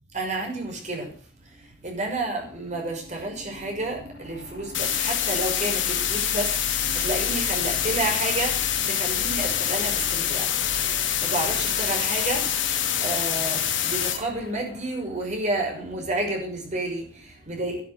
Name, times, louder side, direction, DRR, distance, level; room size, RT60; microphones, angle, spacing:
voice 1, 0.1-1.1 1.5-10.5 11.2-17.8, right 2 dB, 40° right, 1 dB, 6.2 m, -30 dB
sound 1, 2.6-15.4, left 1 dB, 65° left, 5.3 m, -40 dB
sound 2, 4.7-14.2, left 10 dB, 90° left, 3.1 m, -26 dB
14.0 x 12.5 x 6.9 m, 0.43 s
head